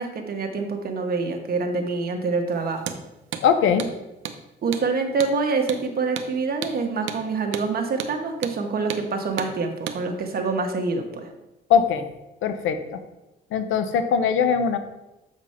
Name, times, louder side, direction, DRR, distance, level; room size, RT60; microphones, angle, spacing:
voice 1, 0.0-3.0 4.6-11.3, right 4 dB, 50° right, 4 dB, 1.2 m, -26 dB
Hammer, 2.8-3.0 3.3-3.5 3.8-3.9 4.2-4.4 4.7-4.9 5.2-5.3 5.7-5.8 6.2-6.3 6.6-6.8 7.1-7.2 7.5-7.7 8.0-8.1 8.4-8.6 8.9-9.0 9.4-9.5 9.9-10.0, right 8 dB, 75° right, 0.7 m, -32 dB
voice 2, 3.4-3.9 11.7-12.1 12.4-13.0 13.5-14.8, left 7 dB, 80° left, 9 dB, 0.8 m, -21 dB
7.4 x 5.1 x 4.3 m, 0.96 s
cardioid pair, 90°, 20 cm